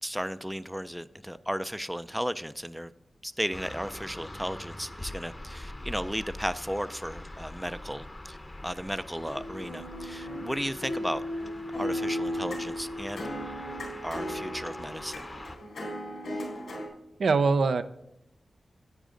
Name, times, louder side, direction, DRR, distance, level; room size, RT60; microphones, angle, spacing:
voice 1, 0.0-2.9 3.2-8.4 8.6-11.2 11.7-13.2 14.0-15.3, equal, ahead, 0.4 m, -34 dB
sound 1, 3.5-15.6, left 1 dB, 25° left, 0.7 m, -44 dB
sound 2, 9.1-16.9, equal, 90° left, 3.8 m, -36 dB
voice 2, 17.2-17.8, right 4 dB, 80° right, 0.5 m, -22 dB
10.0 x 8.9 x 3.8 m
wide cardioid pair, 70°, 0 cm